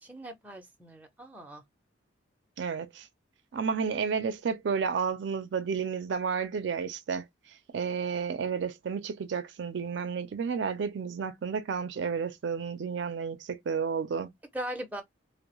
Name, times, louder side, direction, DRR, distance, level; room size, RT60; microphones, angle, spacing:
voice 1, 0.0-1.6 14.5-15.0, right 1 dB, 10° right, 0.5 m, -39 dB
voice 2, 2.6-3.1 3.5-7.3 7.7-14.3, right 6 dB, 65° right, 0.4 m, -31 dB
2.2 x 2.0 x 2.9 m
head